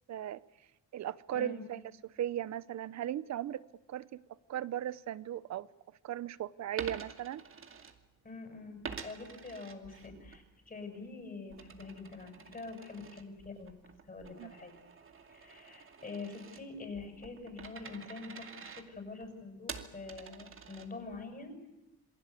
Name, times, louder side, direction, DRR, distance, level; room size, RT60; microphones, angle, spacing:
voice 1, 0.1-0.4 0.9-4.2 4.5-5.7 6.0-7.4 14.4-14.5, right 11 dB, 65° right, 0.8 m, -37 dB
voice 2, 1.3-1.6 8.2-14.7 15.3-21.5, left 3 dB, 30° left, 6.9 m, -45 dB
Coin (dropping), 6.7-8.4 8.8-10.4 10.8-21.2, right 6 dB, 45° right, 2.3 m, -48 dB
27.5 x 19.5 x 8.4 m
cardioid pair, 90°, 30 cm